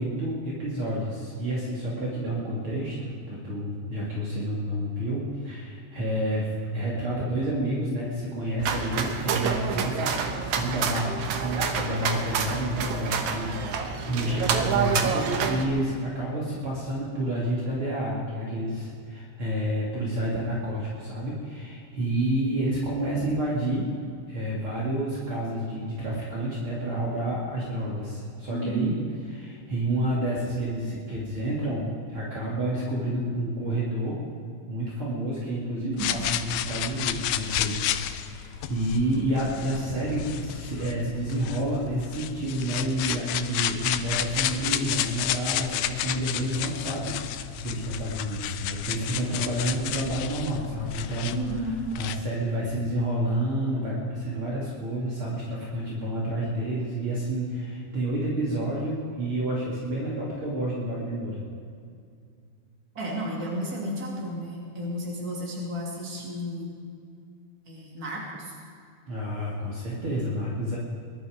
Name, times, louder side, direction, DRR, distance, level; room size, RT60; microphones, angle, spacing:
voice 1, 0.0-10.2 10.4-23.9 24.3-29.0 29.3-34.2 34.7-61.4 69.1-70.8, right 1 dB, 45° right, -5 dB, 3.1 m, -29 dB
sound 1, 8.6-15.6, right 6 dB, 85° right, 2.5 m, -28 dB
voice 2, 28.5-29.0 35.8-36.1 51.3-51.8 62.9-66.7 67.7-68.5, right 1 dB, 30° right, -3 dB, 3.3 m, -32 dB
sound 2, 36.0-52.2, left 11 dB, 80° left, 1.6 m, -32 dB
21.0 x 12.0 x 5.0 m, 2.4 s
omnidirectional pair, 3.3 m